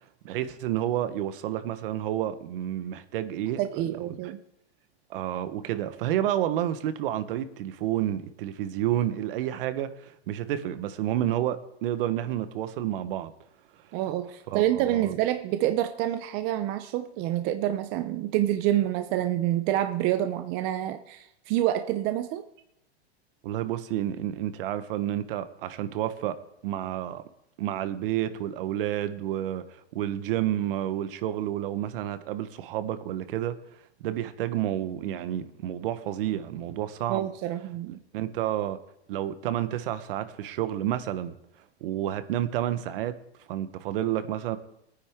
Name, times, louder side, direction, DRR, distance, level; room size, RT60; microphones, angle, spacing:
voice 1, 0.2-4.2 5.1-13.3 14.5-15.1 23.4-26.4 26.6-27.2 27.6-33.6 34.0-37.3 38.1-38.8 39.1-41.4 41.8-43.1 43.5-44.6, right 12 dB, 55° right, 1.1 m, -30 dB
voice 2, 3.6-4.4 13.9-22.4 37.1-38.0, right 13 dB, 30° right, 0.6 m, -27 dB
19.5 x 9.7 x 3.6 m
supercardioid pair, 150°, 33 cm